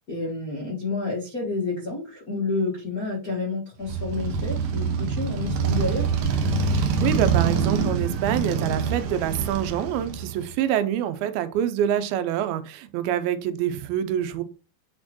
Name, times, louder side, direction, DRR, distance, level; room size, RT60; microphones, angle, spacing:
voice 1, 0.1-6.0, left 3 dB, 80° left, -2 dB, 0.8 m, -29 dB
Motorcycle, 3.8-10.5, right 5 dB, 75° right, 1.8 m, -25 dB
voice 2, 6.7-14.4, right 10 dB, 90° right, 11 dB, 2.5 m, -26 dB
8.5 x 4.3 x 2.9 m, 0.33 s
omnidirectional pair, 4.4 m